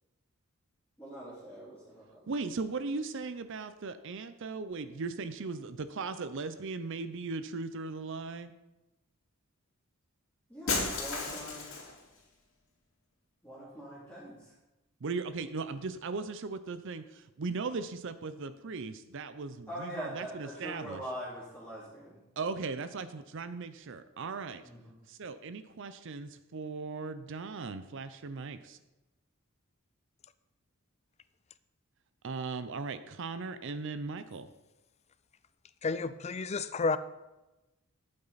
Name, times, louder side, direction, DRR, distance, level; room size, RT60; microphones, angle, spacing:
voice 1, 1.0-2.2 10.5-11.7 13.4-14.5 19.7-22.2 24.6-25.0, equal, 10° left, -10 dB, 2.7 m, -43 dB
voice 2, 2.3-8.5 15.0-21.0 22.4-24.6 25.1-28.8 32.2-34.5, right 4 dB, 60° right, 11 dB, 0.6 m, -38 dB
Shatter, 10.7-12.0, left 3 dB, 65° left, 2.6 m, -33 dB
voice 3, 35.8-37.0, left 4 dB, 30° left, 14 dB, 0.4 m, -31 dB
11.5 x 8.8 x 4.1 m, 1.0 s
head